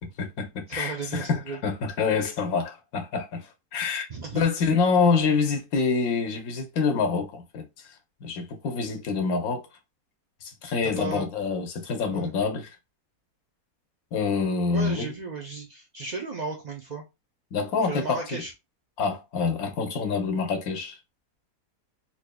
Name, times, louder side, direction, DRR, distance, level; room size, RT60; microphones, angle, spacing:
voice 1, 0.0-3.5 3.7-4.1 4.3-7.7 8.2-9.6 10.4-12.7 14.1-15.1 17.5-18.4 19.0-21.0, left 5 dB, 65° left, 1.2 m, -26 dB
voice 2, 0.7-1.6 4.1-4.5 10.8-11.3 12.1-12.3 14.7-17.0 17.9-18.5, right 4 dB, 75° right, 0.4 m, -35 dB
4.1 x 2.9 x 2.2 m
omnidirectional pair, 1.7 m